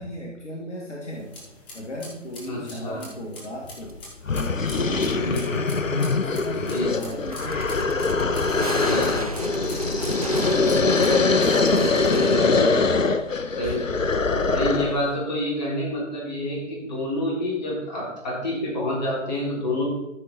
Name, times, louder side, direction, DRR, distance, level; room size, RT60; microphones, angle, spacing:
voice 1, 0.0-1.3 1.7-4.0 4.3-5.5 6.1-7.7 8.1-12.3 13.6-14.2, equal, 65° left, -2 dB, 2.0 m, -37 dB
sound 1, 1.1-11.2, left 2 dB, 10° left, 0.7 m, -45 dB
voice 2, 2.5-3.0 5.2-5.6 6.7-7.2 8.8-9.2 12.1-12.5 13.5-13.9 14.5-19.8, left 1 dB, 35° left, -4 dB, 3.8 m, -28 dB
sound 2, 2.5-2.6 3.9-4.0 6.0-6.1 6.8-12.4, right 2 dB, 30° right, 0.5 m, -33 dB
sound 3, 3.9-4.0 4.3-15.1, left 3 dB, 85° left, 0.8 m, -23 dB
13.0 x 5.9 x 4.0 m, 0.89 s
figure-of-eight pair, 140°, 38 cm